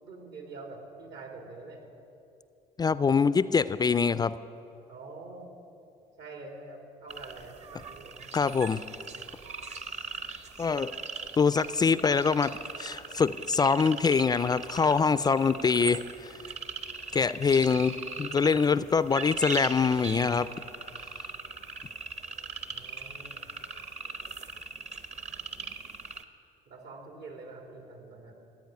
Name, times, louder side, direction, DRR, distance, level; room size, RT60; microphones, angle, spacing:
voice 1, 0.0-1.8 4.9-5.5 6.2-8.3 22.7-23.4 26.7-28.3, right 3 dB, 75° right, 3 dB, 3.0 m, -46 dB
voice 2, 2.8-4.3 8.3-8.8 10.6-10.9 11.4-12.5 12.8-16.4 17.1-20.5, left 5 dB, 25° left, 15 dB, 0.3 m, -24 dB
sound 1, 7.1-26.2, right 4 dB, 40° right, 0.9 m, -40 dB
15.5 x 8.9 x 9.5 m, 2.7 s
cardioid pair, 110°, 17 cm